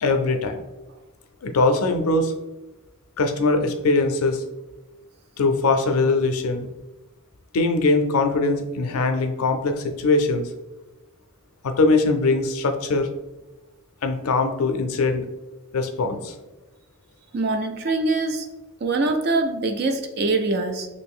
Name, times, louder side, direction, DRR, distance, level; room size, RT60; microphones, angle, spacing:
voice 1, 0.0-0.6 1.4-2.3 3.2-4.4 5.4-6.7 7.5-10.5 11.6-13.1 14.0-15.2 15.7-16.3, left 3 dB, 85° left, 7 dB, 0.4 m, -21 dB
voice 2, 17.3-18.5 18.8-20.9, right 3 dB, 45° right, 6 dB, 0.4 m, -23 dB
3.0 x 2.6 x 3.5 m, 1.1 s
head